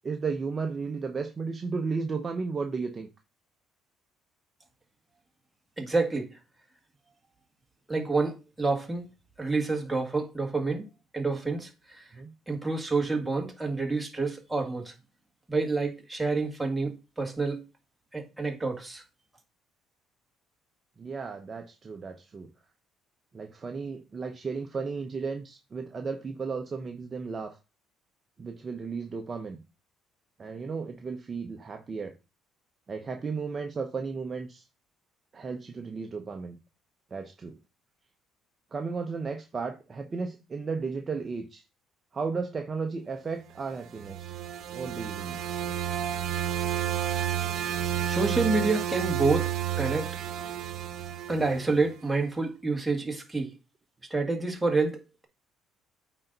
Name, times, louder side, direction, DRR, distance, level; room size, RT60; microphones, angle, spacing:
voice 1, 0.0-3.1 12.1-12.3 21.0-22.5 23.3-27.6 28.4-29.6 30.4-32.1 32.9-34.6 35.3-36.6 37.1-37.6 38.7-41.6 42.1-44.3 44.7-45.4, right 4 dB, 30° right, 0.8 m, -34 dB
voice 2, 5.8-6.3 7.9-9.1 9.4-10.9 11.1-12.1 12.5-14.9 15.5-17.6 18.1-19.0 48.0-49.5 49.8-50.1 51.3-53.5 54.1-55.0, right 3 dB, 10° right, 1.7 m, -28 dB
sound 1, 43.7-51.9, right 11 dB, 65° right, 1.0 m, -31 dB
8.7 x 3.9 x 4.0 m
cardioid pair, 110°, 0 cm